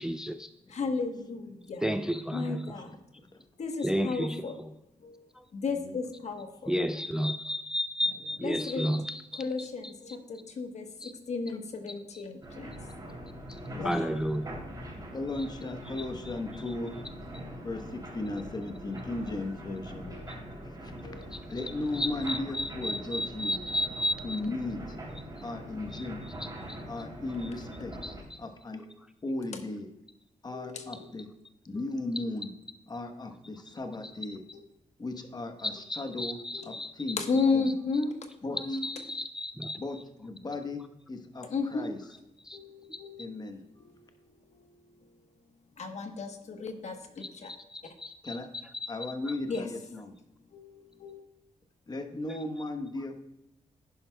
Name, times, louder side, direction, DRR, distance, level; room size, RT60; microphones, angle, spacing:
voice 1, 0.0-0.5 1.8-2.8 3.8-4.7 5.3-5.4 6.7-9.9 11.0-11.1 11.9-12.2 12.7-12.8 13.5-14.6 15.3-15.5 15.8-16.9 20.3-20.4 21.3-24.5 25.1-25.2 25.9-26.8 27.4-27.5 28.0-28.4 30.9-31.1 33.7-33.8 34.0-34.1 35.6-38.0 38.6-40.0 42.4-42.6 42.9-43.0 47.2-49.4 52.3-52.4, equal, 5° right, 9 dB, 0.3 m, -34 dB
voice 2, 0.7-1.8 2.3-2.9 3.6-4.6 5.0-5.2 5.5-6.7 8.4-8.9 9.4-12.7 13.8-14.1 20.1-20.2 21.0-21.3 30.5-31.1 36.5-36.7 37.2-38.1 41.5-41.9 42.5-43.3 45.8-47.5 49.5-49.6 50.5-50.7 51.0-51.2, left 4 dB, 60° left, 5 dB, 1.1 m, -33 dB
sound 1, 12.4-28.2, equal, 30° right, 3.1 m, -43 dB
voice 3, 13.7-14.0 15.1-16.9 17.6-20.1 20.6-20.9 21.5-23.6 24.2-25.0 25.4-26.2 26.8-27.9 28.4-28.9 29.2-29.9 30.4-31.3 31.6-32.5 32.9-34.4 35.0-36.4 36.6-37.2 37.5-37.7 38.4-38.9 39.8-40.8 41.1-42.0 43.2-43.9 48.2-48.5 48.9-50.1 51.9-53.2, left 2 dB, 30° left, 6 dB, 1.1 m, -36 dB
10.5 x 10.5 x 2.3 m, 0.92 s
wide cardioid pair, 115°, 14 cm